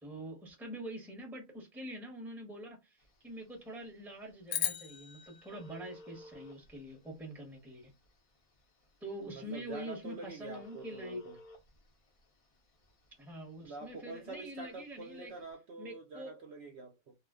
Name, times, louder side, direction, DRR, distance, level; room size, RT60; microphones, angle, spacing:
voice 1, 0.0-7.9 9.0-11.2 13.2-15.3 15.8-16.3, equal, ahead, 0.7 m, -45 dB
Telephone, 3.0-15.5, left 1 dB, 55° left, 0.4 m, -59 dB
sound 1, 4.5-6.9, left 9 dB, 70° left, 0.9 m, -39 dB
voice 2, 9.3-11.4 13.6-17.1, right 3 dB, 60° right, 0.8 m, -46 dB
2.4 x 2.1 x 3.5 m
omnidirectional pair, 1.4 m